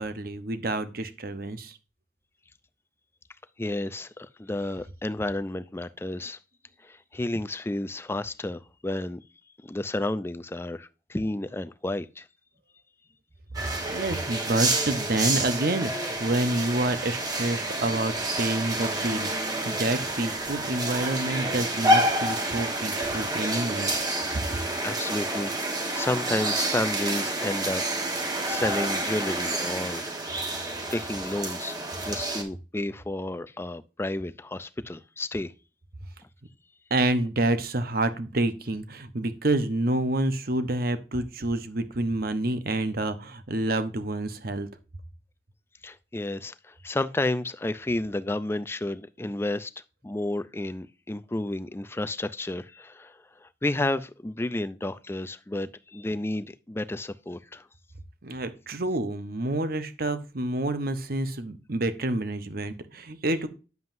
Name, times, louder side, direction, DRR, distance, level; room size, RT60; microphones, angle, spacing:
voice 1, 0.0-1.8 13.6-23.9 24.3-24.6 36.9-44.7 58.2-63.5, right 2 dB, 55° right, 1.0 m, -28 dB
voice 2, 3.6-6.4 6.8-9.2 9.6-12.3 23.5-23.6 24.8-25.5 25.9-27.8 28.5-30.0 30.9-31.7 32.0-35.5 45.8-49.7 50.0-57.7, left 2 dB, 15° left, 0.4 m, -31 dB
sound 1, 13.5-32.4, right 1 dB, 20° right, 1.3 m, -29 dB
9.4 x 7.5 x 2.6 m
head